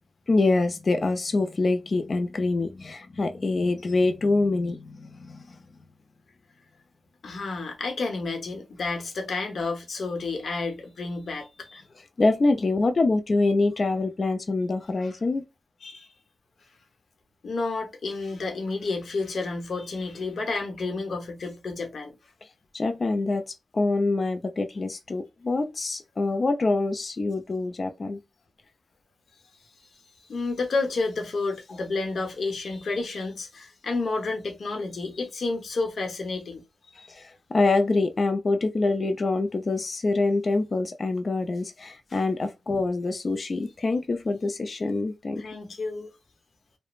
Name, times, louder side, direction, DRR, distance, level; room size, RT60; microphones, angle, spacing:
voice 1, 0.3-5.6 12.2-15.4 22.7-28.2 37.1-45.4, left 3 dB, 45° left, 0.4 m, -25 dB
voice 2, 7.2-11.8 15.0-15.1 15.8-16.1 17.4-22.2 30.3-37.1 45.4-46.1, left 3 dB, 70° left, 0.9 m, -30 dB
3.0 x 2.0 x 2.4 m
wide cardioid pair, 100°, 0 cm